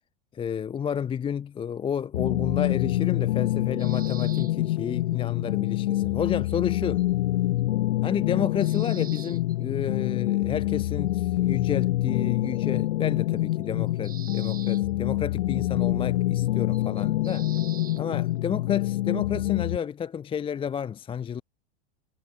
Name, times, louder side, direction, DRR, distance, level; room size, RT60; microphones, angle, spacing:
voice 1, 0.3-7.1 8.0-17.5 18.0-21.4, left 8 dB, 15° left, 0.5 m, -31 dB
sound 1, 2.1-19.8, left 15 dB, 70° left, 1.2 m, -26 dB
sound 2, 3.8-4.7 6.5-7.0 8.3-8.4 8.6-9.6 10.3-10.4 12.4-12.8 13.6-13.7 14.0-14.8 16.4-16.5 16.7-18.0, right 8 dB, 25° right, 3.0 m, -46 dB
hypercardioid pair, 105°, 34 cm